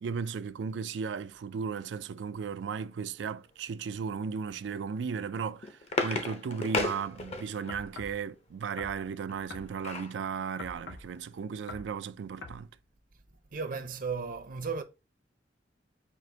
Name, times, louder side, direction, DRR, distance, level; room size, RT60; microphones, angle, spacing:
voice 1, 0.0-12.7, right 6 dB, 90° right, 0.4 m, -35 dB
sound 1, 5.3-7.8 9.3-10.2 10.7-10.8 11.0-11.3, left 3 dB, 35° left, 0.6 m, -34 dB
sound 2, 7.7-8.2 8.8-9.0 9.5-9.7 10.6-11.1 11.7-11.9 12.4-12.6, left 3 dB, 90° left, 0.7 m, -44 dB
voice 2, 13.5-14.8, right 5 dB, 50° right, 0.6 m, -34 dB
4.6 x 2.5 x 3.7 m
head